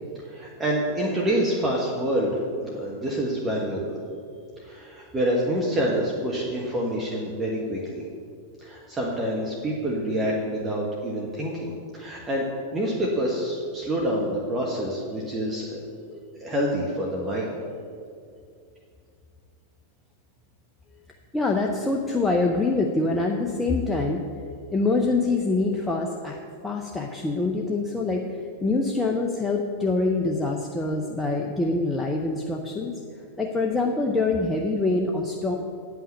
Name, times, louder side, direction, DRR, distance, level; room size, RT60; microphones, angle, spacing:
voice 1, 0.2-2.3 2.6-4.0 4.6-8.0 8.6-12.4 12.7-15.8 16.4-17.5, right 1 dB, 15° right, -3 dB, 1.4 m, -27 dB
voice 2, 21.3-24.2 24.7-26.4 26.6-28.3 28.6-32.9 33.4-35.6, left 3 dB, 10° left, 0 dB, 0.7 m, -25 dB
9.6 x 5.7 x 7.4 m, 2.3 s
figure-of-eight pair, 90°, 0 cm